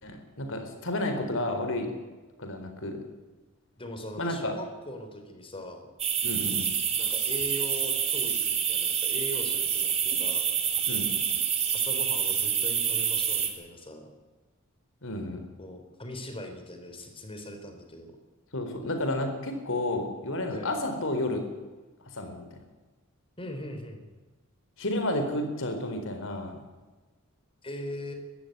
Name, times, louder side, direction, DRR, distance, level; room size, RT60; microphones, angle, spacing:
voice 1, 0.0-1.9 2.4-3.0 4.2-4.5 6.2-6.7 10.9-11.1 15.0-15.4 18.5-21.4 22.2-22.4 24.8-26.6, left 1 dB, 65° left, 6 dB, 4.3 m, -31 dB
voice 2, 3.8-5.9 7.0-10.5 11.7-14.1 15.6-18.2 20.5-20.7 23.4-24.1 27.6-28.1, left 1 dB, 25° left, 6 dB, 3.6 m, -40 dB
sound 1, 6.0-13.5, right 8 dB, 30° right, 2.6 m, -27 dB
22.5 x 14.5 x 9.4 m, 1.2 s
head